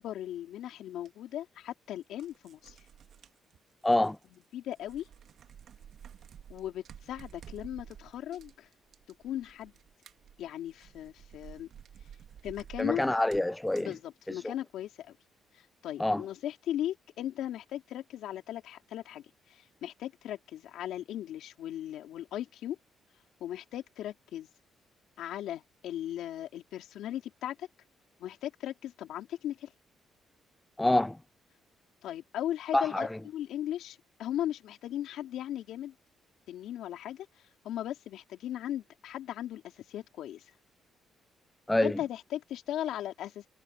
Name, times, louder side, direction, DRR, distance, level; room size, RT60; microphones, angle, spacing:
voice 1, 0.0-2.8 4.3-5.1 6.5-8.7 9.1-9.7 10.4-11.7 12.4-13.0 13.8-15.2 15.5-22.8 23.4-24.5 25.2-27.7 28.2-29.7 32.0-35.9 36.5-40.5 41.8-43.5, left 12 dB, 80° left, 3.7 m, -37 dB
sound 1, 1.1-1.2 2.0-4.5 4.7-14.0, right 9 dB, 65° right, 1.8 m, -52 dB
voice 2, 3.8-4.2 12.8-13.9 14.4-14.5 16.0-16.2 30.8-31.2 32.7-33.1 41.7-41.9, left 1 dB, 10° left, 0.4 m, -26 dB
cardioid pair, 90°, 0 cm